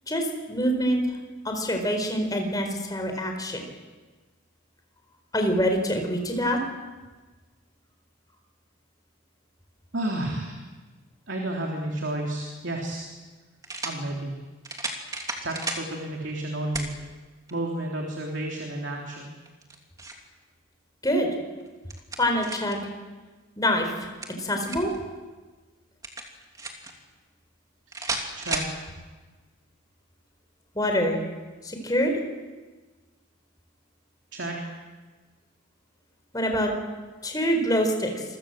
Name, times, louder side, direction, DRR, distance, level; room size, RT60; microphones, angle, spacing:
voice 1, 0.1-1.0 1.4-3.6 5.3-6.6 21.0-21.3 22.2-22.8 23.6-24.1 24.4-24.9 30.7-31.2 31.6-32.1 36.3-36.7 37.2-38.2, equal, 20° left, 4 dB, 4.4 m, -25 dB
voice 2, 9.9-10.6 11.3-13.1 13.8-14.3 15.4-16.9 17.5-19.3 27.9-28.7 34.3-34.6, right 1 dB, 60° right, 0 dB, 3.4 m, -31 dB
sound 1, 12.4-12.5 13.6-14.0 14.6-15.9 16.7-16.9 17.5-17.6 19.5-20.3 21.6-22.8 24.0-25.0 26.0-26.9 27.9-28.7, right 2 dB, 15° right, 2.9 m, -33 dB
28.0 x 23.0 x 7.7 m, 1.3 s
head